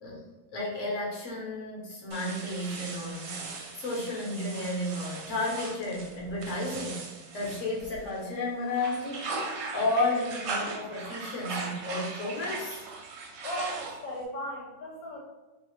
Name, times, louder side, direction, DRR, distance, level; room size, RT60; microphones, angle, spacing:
voice 1, 0.5-3.4 3.7-7.1 7.3-9.3 9.7-12.8, left 2 dB, 50° left, -4 dB, 1.0 m, -32 dB
sound 1, 2.1-8.3 8.7-14.2, right 4 dB, 80° right, 1.3 m, -39 dB
voice 2, 13.4-15.2, equal, 80° left, -2 dB, 1.3 m, -36 dB
3.2 x 2.6 x 3.0 m, 1.1 s
omnidirectional pair, 2.1 m